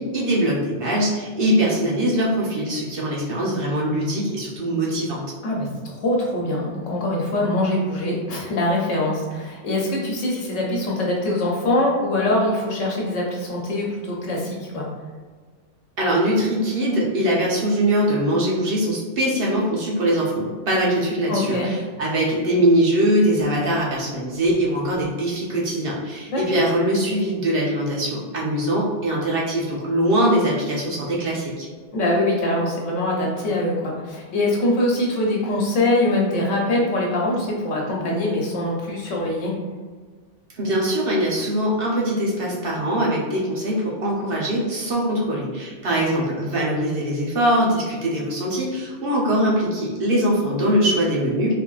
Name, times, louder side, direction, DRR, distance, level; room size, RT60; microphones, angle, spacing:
voice 1, 0.0-5.2 16.0-31.7 40.5-51.6, right 1 dB, 55° right, -4 dB, 0.9 m, -22 dB
voice 2, 5.4-14.9 21.3-21.7 26.3-26.6 31.9-39.5, left 1 dB, 90° left, -2 dB, 1.2 m, -23 dB
3.5 x 3.3 x 2.3 m, 1.5 s
omnidirectional pair, 1.2 m